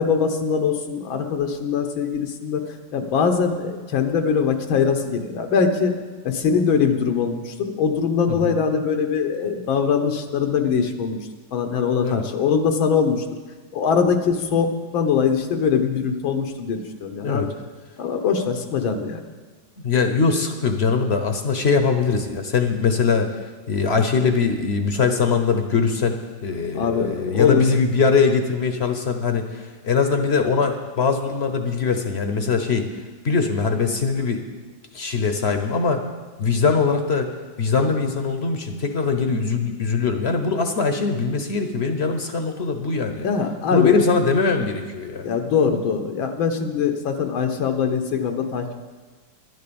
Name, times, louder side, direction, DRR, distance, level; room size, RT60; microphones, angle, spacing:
voice 1, 0.0-5.9 6.2-11.2 11.5-13.2 13.7-17.5 18.0-19.2 26.7-27.6 43.2-44.0 45.2-48.8, left 6 dB, 90° left, 6 dB, 1.9 m, -22 dB
voice 2, 19.8-23.3 23.7-26.2 26.4-32.9 33.2-34.4 34.9-36.0 36.4-37.3 37.6-43.3 43.7-45.3, left 5 dB, 50° left, 6 dB, 0.8 m, -21 dB
11.0 x 10.5 x 7.0 m, 1.4 s
omnidirectional pair, 2.1 m